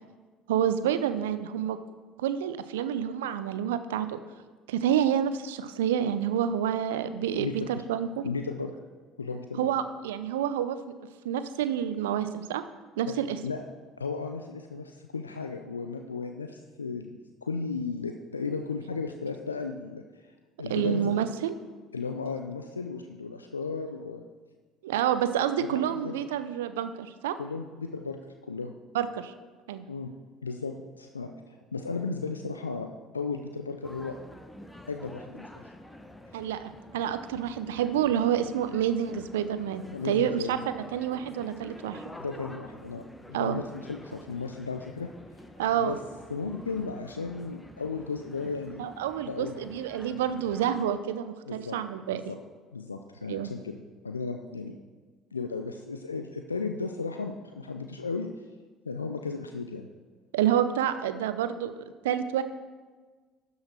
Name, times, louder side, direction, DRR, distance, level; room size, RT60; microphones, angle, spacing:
voice 1, 0.5-1.8 2.2-4.2 4.7-8.2 9.6-10.8 11.2-12.6 13.0-13.4 20.7-21.5 24.8-27.4 28.9-29.3 29.7-29.8 36.3-42.0 43.3-43.6 45.6-46.0 48.8-52.2 53.3-53.5 60.3-61.7 62.0-62.4, right 9 dB, 75° right, 11 dB, 0.5 m, -28 dB
voice 2, 7.4-7.8 8.2-8.7 9.2-9.7 13.1-13.2 13.4-13.6 14.0-20.0 20.6-21.2 21.9-24.2 25.6-26.2 27.4-28.2 28.4-28.7 29.9-30.1 30.4-32.9 33.1-34.2 34.9-35.6 39.9-40.6 42.2-45.1 45.8-46.0 46.3-48.9 49.2-49.6 51.5-51.8 52.1-52.4 52.7-53.8 54.0-54.7 55.3-58.3 58.8-59.9, left 4 dB, 90° left, 5 dB, 0.4 m, -35 dB
sound 1, 33.8-50.8, left 1 dB, 10° left, 1.0 m, -48 dB
12.0 x 5.6 x 4.4 m, 1.4 s
figure-of-eight pair, 60°, 0 cm